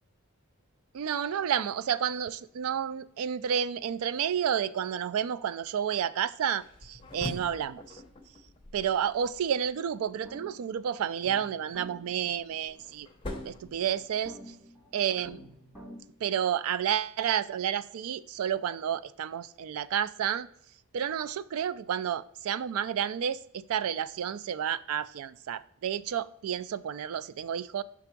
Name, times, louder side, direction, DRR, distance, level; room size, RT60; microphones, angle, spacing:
voice 1, 0.9-8.0 8.7-13.1 13.4-14.4 14.9-15.4 16.2-20.5 20.9-27.8, right 8 dB, 70° right, 0.3 m, -30 dB
sound 1, 6.6-9.8 12.0-14.5, left 1 dB, 20° left, 0.7 m, -44 dB
sound 2, 10.0-16.0, equal, 5° right, 1.6 m, -50 dB
5.9 x 3.5 x 5.8 m
head